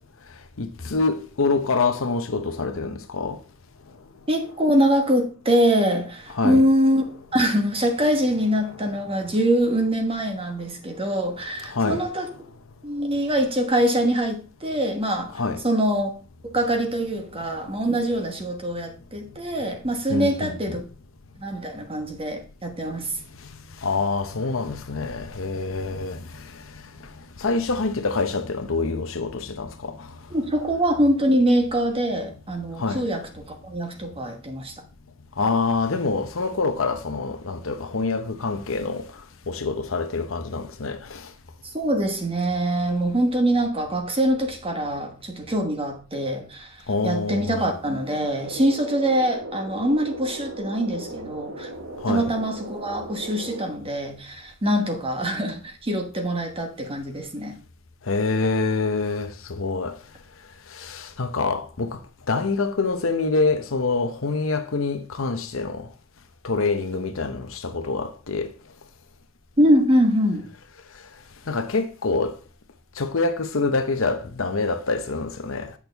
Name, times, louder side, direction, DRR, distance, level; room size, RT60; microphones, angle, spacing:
voice 1, 0.6-3.4 6.3-6.6 9.2-9.3 11.6-12.1 15.3-15.6 20.1-20.8 23.8-27.1 27.4-30.2 32.8-33.0 35.4-41.3 46.9-47.7 52.0-52.3 58.0-60.0 60.7-62.0 62.3-65.9 66.4-68.5 71.5-72.4 73.0-75.7, left 3 dB, 70° left, 0.8 m, -26 dB
voice 2, 4.3-7.0 7.3-12.3 12.8-15.3 15.6-16.1 16.4-20.8 21.4-23.1 30.3-34.8 41.6-46.7 47.0-51.7 52.1-57.6 69.6-70.5, equal, 25° right, 1.2 m, -23 dB
sound 1, 48.4-53.6, right 1 dB, 75° right, 1.5 m, -37 dB
8.5 x 6.2 x 3.4 m
head